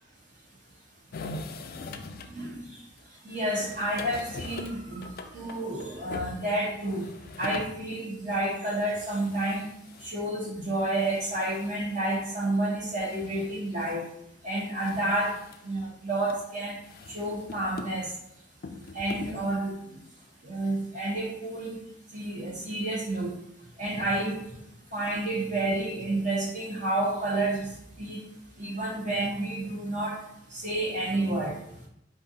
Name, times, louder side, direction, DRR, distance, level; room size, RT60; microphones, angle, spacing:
sound 1, 1.1-2.4 3.0-3.1 3.4-7.8 8.2-8.3 8.6-8.7 8.9-10.2 11.0-12.0 12.8-14.0 14.3-14.4 14.8-15.7 16.3-16.4 16.8-18.1 18.6-19.4, left 3 dB, 55° left, 0.4 m, -42 dB
voice 1, 3.2-7.1 7.4-9.6 10.0-14.0 14.4-15.3 15.6-16.8 17.1-18.1 18.9-19.7 20.4-21.7 22.1-23.3 23.8-24.4 24.9-27.7 28.0-28.2 28.6-30.2 30.5-31.5, right 1 dB, 45° right, -3 dB, 1.5 m, -30 dB
4.7 x 2.6 x 4.0 m, 0.77 s
head